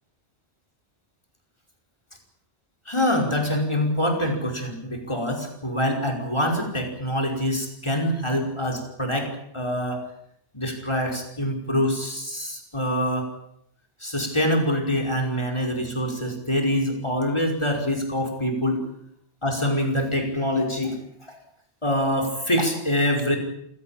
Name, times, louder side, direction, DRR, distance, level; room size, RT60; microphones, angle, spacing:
voice 1, 2.9-10.0 10.5-13.3 14.0-18.8 19.4-21.0 21.3-21.4 21.8-23.4, equal, 25° left, 2 dB, 5.3 m, -25 dB
27.5 x 17.0 x 8.9 m, 0.73 s
omnidirectional pair, 1.2 m